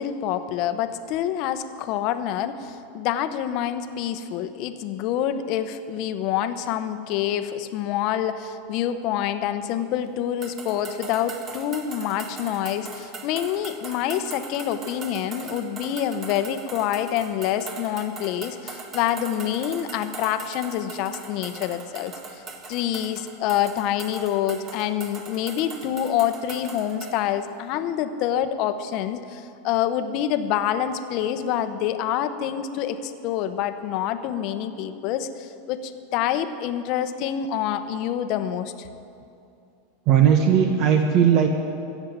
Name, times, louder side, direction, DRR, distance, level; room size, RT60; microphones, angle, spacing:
voice 1, 0.0-22.4 22.7-38.9, left 10 dB, 50° left, 10 dB, 0.9 m, -27 dB
sound 1, 10.4-27.2, right 4 dB, 30° right, 1.5 m, -40 dB
voice 2, 40.1-41.5, right 8 dB, 50° right, 5 dB, 1.1 m, -17 dB
15.5 x 7.3 x 9.1 m, 2.5 s
supercardioid pair, 135°, 0 cm